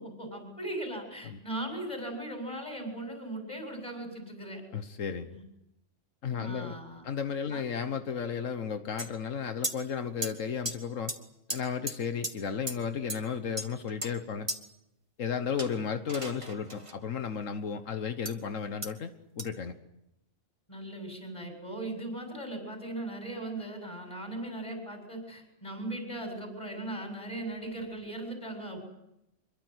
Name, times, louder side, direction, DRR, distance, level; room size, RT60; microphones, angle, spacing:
voice 1, 0.0-4.6 5.3-5.4 6.3-7.1 7.5-7.6 20.7-28.8, right 1 dB, 25° left, 4 dB, 7.8 m, -38 dB
voice 2, 4.7-5.4 6.2-6.8 7.0-11.1 11.5-14.5 15.2-19.8, left 6 dB, 85° left, 9 dB, 1.6 m, -34 dB
sound 1, 9.0-9.1 9.6-9.8 10.2-10.3 10.7-10.8 11.1-11.2 11.5-11.6 11.9-12.0 12.2-12.3 12.7-12.8 13.1-13.2 13.6-14.1 14.5-14.6 15.6-16.9 18.3-18.4 18.8-18.9 19.4-19.5, right 1 dB, 25° right, 2.3 m, -35 dB
26.0 x 23.0 x 8.1 m, 0.85 s
omnidirectional pair, 1.3 m